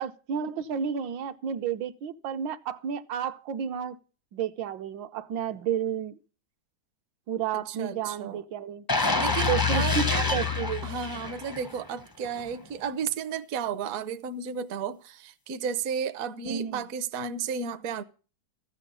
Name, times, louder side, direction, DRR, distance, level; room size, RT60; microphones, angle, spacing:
voice 1, 0.0-4.0 4.3-6.2 7.3-9.2 9.5-10.9 16.4-16.8, right 8 dB, 75° right, 1.4 m, -31 dB
voice 2, 7.5-8.4 8.9-10.0 10.8-18.0, right 7 dB, 60° right, 1.0 m, -33 dB
sound 1, 8.9-11.8 12.2-12.4, left 4 dB, 30° left, 0.4 m, -27 dB
13.5 x 8.3 x 5.4 m
omnidirectional pair, 2.1 m